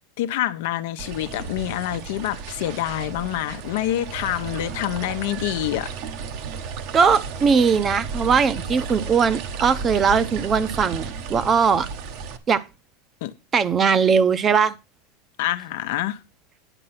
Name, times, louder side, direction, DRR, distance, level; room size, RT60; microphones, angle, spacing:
voice 1, 0.2-5.9 13.2-13.3 15.4-16.2, left 14 dB, 70° left, 0.8 m, -26 dB
sound 1, 1.0-12.4, right 5 dB, 60° right, 1.1 m, -33 dB
voice 2, 6.9-11.9 12.5-12.6 13.5-14.7, right 6 dB, 25° right, 0.7 m, -20 dB
9.9 x 5.3 x 5.8 m
supercardioid pair, 125°, 0 cm